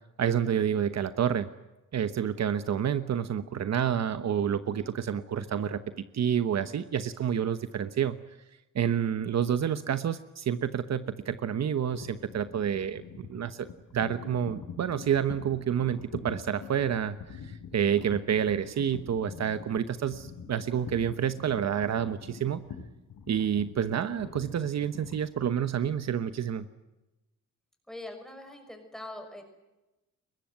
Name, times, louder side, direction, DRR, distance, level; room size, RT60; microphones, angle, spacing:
voice 1, 0.2-1.5 1.9-5.8 6.1-8.2 8.7-22.6 23.3-26.6, right 8 dB, 55° right, 11 dB, 1.1 m, -29 dB
sound 1, 11.9-26.0, left 6 dB, 85° left, 5.2 m, -45 dB
voice 2, 27.9-29.4, left 1 dB, ahead, 5 dB, 5.7 m, -42 dB
23.0 x 21.0 x 9.3 m, 1.0 s
wide cardioid pair, 165°, 32 cm